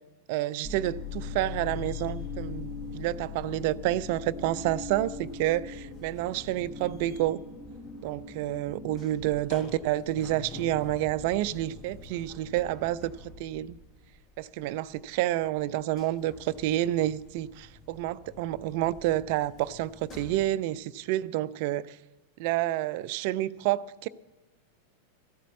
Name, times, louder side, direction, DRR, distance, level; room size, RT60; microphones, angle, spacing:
voice 1, 0.3-7.4 8.0-13.8 14.4-22.0 22.4-24.1, right 14 dB, 50° right, 0.4 m, -29 dB
sound 1, 0.6-15.2 15.6-20.5, left 5 dB, 30° left, 1.3 m, -42 dB
14.0 x 8.1 x 7.3 m
figure-of-eight pair, 90°, 0 cm